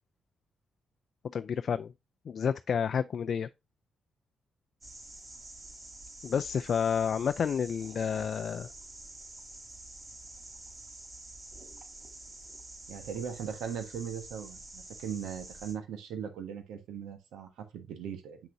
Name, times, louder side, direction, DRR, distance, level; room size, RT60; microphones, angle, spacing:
voice 1, 1.2-1.9 2.3-3.5 6.2-8.7, left 7 dB, 60° left, 0.4 m, -30 dB
sound 1, 4.8-15.7, right 2 dB, 40° right, 3.9 m, -48 dB
voice 2, 12.9-18.4, right 7 dB, 85° right, 1.4 m, -39 dB
6.8 x 6.1 x 2.6 m
supercardioid pair, 50°, 0 cm